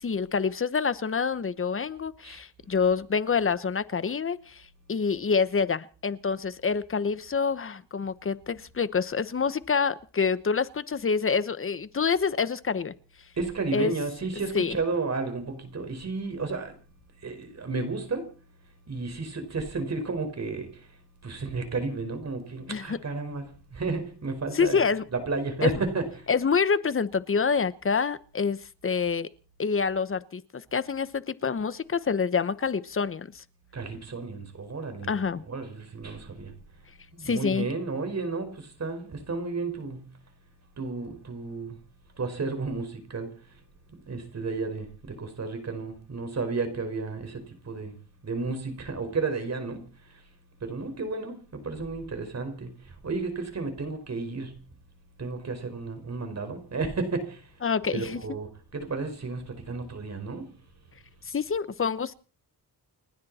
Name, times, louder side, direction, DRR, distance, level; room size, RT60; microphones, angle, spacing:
voice 1, 0.0-12.9 13.7-13.9 14.5-14.8 22.7-23.0 24.5-25.0 25.6-25.7 26.3-29.3 29.6-33.4 35.1-35.4 37.2-37.7 57.6-58.2 61.2-62.1, left 5 dB, 30° left, 1.0 m, -27 dB
voice 2, 13.4-16.7 17.2-18.3 18.9-20.9 21.2-23.4 23.7-24.8 25.1-26.0 33.7-35.1 35.5-36.5 37.1-40.0 40.8-41.8 42.2-43.3 44.1-47.9 48.2-49.8 50.1-50.2 50.6-54.6 55.2-57.5 57.9-60.5, right 3 dB, 40° right, 5.1 m, -32 dB
30.0 x 10.5 x 4.3 m
cardioid pair, 120°, 41 cm